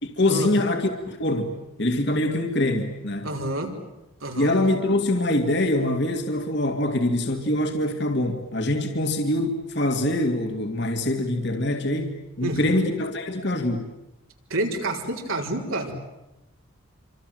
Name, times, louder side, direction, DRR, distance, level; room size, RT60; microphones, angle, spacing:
voice 1, 0.0-3.3 4.3-13.9, left 1 dB, 55° left, 4 dB, 2.4 m, -24 dB
voice 2, 3.2-3.7 4.2-4.5 12.4-12.9 14.5-15.9, right 1 dB, 80° right, 1 dB, 4.7 m, -28 dB
27.5 x 26.0 x 7.8 m, 0.95 s
head